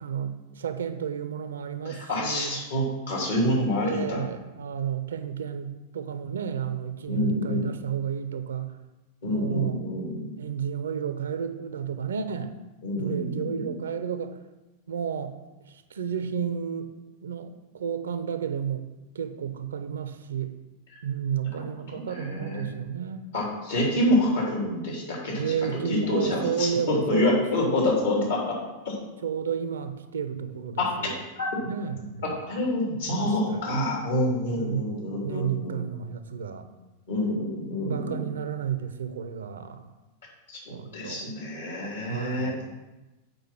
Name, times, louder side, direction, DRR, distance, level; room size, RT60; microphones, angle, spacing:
voice 1, 0.0-2.6 3.8-8.7 9.3-9.8 10.4-12.5 12.9-14.4 14.9-15.4 15.7-16.9 17.2-18.8 19.1-20.5 21.0-23.3 25.3-27.7 29.2-31.2 31.6-32.4 33.1-33.8 34.5-36.7 37.8-39.9 40.7-41.3 42.1-42.7, right 8 dB, 65° right, 10 dB, 0.6 m, -32 dB
voice 2, 1.8-4.2 7.1-7.7 9.2-10.2 12.8-13.7 21.9-22.6 23.3-25.5 25.9-28.4 28.9-29.0 30.8-30.9 31.4-31.5 32.5-35.8 37.1-38.3 40.5-40.6 40.9-42.7, left 1 dB, 65° left, -2 dB, 3.3 m, -27 dB
7.8 x 5.0 x 6.0 m, 1.1 s
figure-of-eight pair, 90°, 0 cm